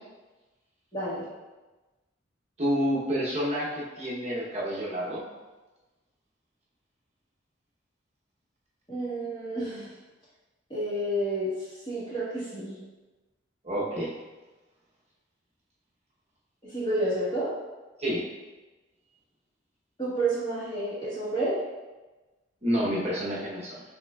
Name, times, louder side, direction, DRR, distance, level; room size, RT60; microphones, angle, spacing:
voice 1, 0.9-1.3 8.9-9.9 10.7-12.8 16.6-17.5 20.0-21.6, right 1 dB, 25° left, -8 dB, 1.4 m, -30 dB
voice 2, 2.6-5.2 13.6-14.1 18.0-18.2 22.6-23.8, equal, 35° right, -6 dB, 0.9 m, -29 dB
5.9 x 3.6 x 2.3 m, 1.2 s
head